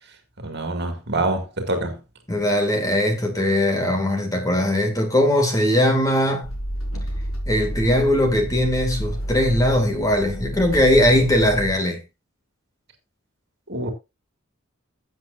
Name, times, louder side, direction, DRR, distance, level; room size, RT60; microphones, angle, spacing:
voice 1, 0.4-2.0 13.7-13.9, right 2 dB, 50° right, 2.2 m, -25 dB
voice 2, 2.3-6.5 7.5-12.0, left 1 dB, 15° left, 2.3 m, -20 dB
sound 1, 6.4-11.7, equal, 75° left, 4.3 m, -30 dB
15.0 x 8.1 x 2.6 m
head